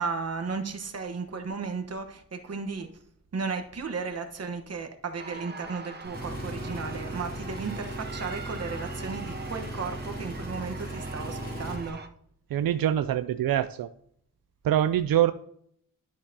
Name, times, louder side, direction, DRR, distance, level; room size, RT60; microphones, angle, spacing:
voice 1, 0.0-2.9 3.3-12.0, right 4 dB, 45° right, 1.2 m, -34 dB
sound 1, 5.2-12.1, right 4 dB, 30° right, 0.7 m, -43 dB
Engine, 6.0-11.9, right 1 dB, 25° left, 2.3 m, -37 dB
voice 2, 12.5-13.9 14.6-15.3, right 11 dB, 85° right, 0.5 m, -24 dB
11.5 x 6.7 x 2.8 m
wide cardioid pair, 145°, 34 cm